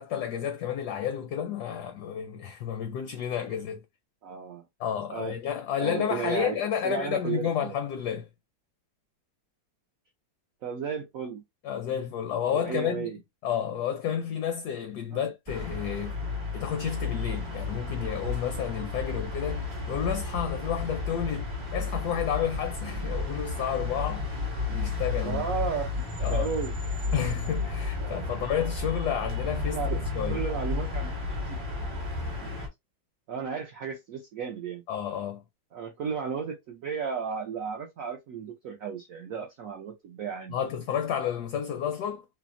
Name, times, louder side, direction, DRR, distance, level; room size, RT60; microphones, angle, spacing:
voice 1, 0.0-3.8 4.8-8.3 11.6-13.1 13.4-16.2 16.5-25.5 26.2-26.5 27.1-29.8 30.1-30.4 34.9-35.4 40.5-42.2, left 9 dB, 75° left, 1.0 m, -31 dB
voice 2, 4.2-4.6 5.1-5.3 5.8-6.6 6.8-7.7 10.6-11.4 12.5-13.2 15.1-15.3 22.9-23.0 25.1-25.9 26.3-26.7 28.0-28.3 29.7-30.0 30.3-31.6 32.4-32.6 33.3-34.8 35.7-40.6, right 6 dB, 75° right, 0.7 m, -34 dB
sound 1, 15.5-32.7, left 3 dB, 35° right, 0.5 m, -32 dB
3.2 x 2.0 x 2.5 m
omnidirectional pair, 2.0 m